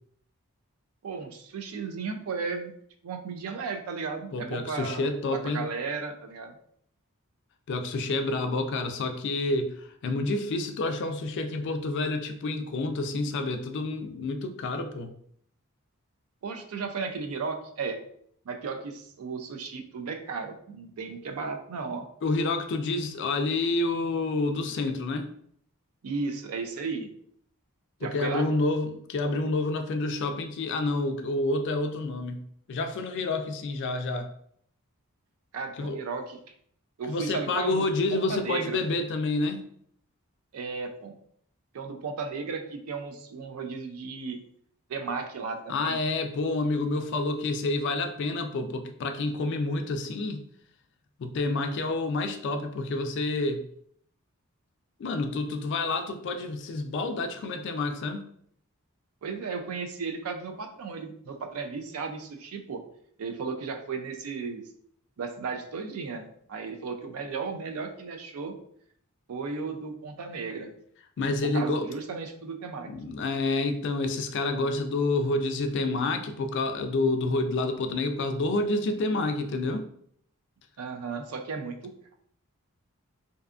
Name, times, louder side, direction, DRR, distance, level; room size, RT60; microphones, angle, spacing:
voice 1, 1.0-2.7 3.0-6.6 16.4-18.0 18.5-22.1 26.0-27.1 28.0-28.5 35.5-36.4 37.0-37.8 38.1-38.8 40.5-41.2 41.7-44.4 44.9-46.0 59.2-62.8 63.2-64.6 65.2-68.6 69.3-70.7 71.4-72.9 80.8-82.1, right 4 dB, 75° right, 6 dB, 0.4 m, -35 dB
voice 2, 4.3-5.7 7.7-9.7 10.0-15.1 22.2-25.3 28.0-32.4 32.7-34.3 35.8-36.0 37.1-39.7 45.7-50.4 51.2-53.6 55.0-58.2 71.2-71.9 72.9-79.8, left 2 dB, 55° left, 7 dB, 0.3 m, -28 dB
2.6 x 2.3 x 2.3 m, 0.66 s
head